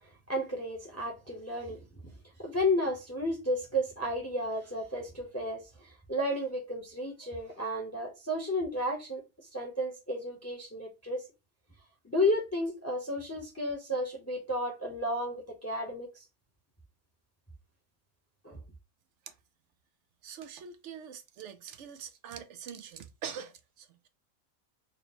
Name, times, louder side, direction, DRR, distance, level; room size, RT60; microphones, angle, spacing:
voice 1, 0.3-1.8 2.4-11.2 12.0-16.2 18.4-18.6, left 1 dB, 15° left, 0.7 m, -32 dB
voice 2, 20.2-24.1, right 8 dB, 65° right, 0.7 m, -44 dB
3.9 x 2.1 x 4.1 m
omnidirectional pair, 1.5 m